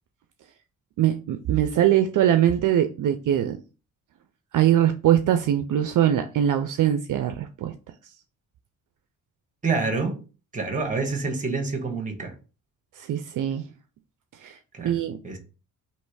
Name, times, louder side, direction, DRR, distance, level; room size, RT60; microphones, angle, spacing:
voice 1, 1.0-3.6 4.5-7.7 13.0-13.6 14.4-14.6 14.8-15.2, right 11 dB, 65° right, 0.4 m, -22 dB
voice 2, 9.6-10.2 10.5-12.3 14.7-15.0 15.2-15.4, right 4 dB, 20° right, 1.2 m, -27 dB
3.2 x 2.9 x 4.6 m
cardioid pair, 110°, 34 cm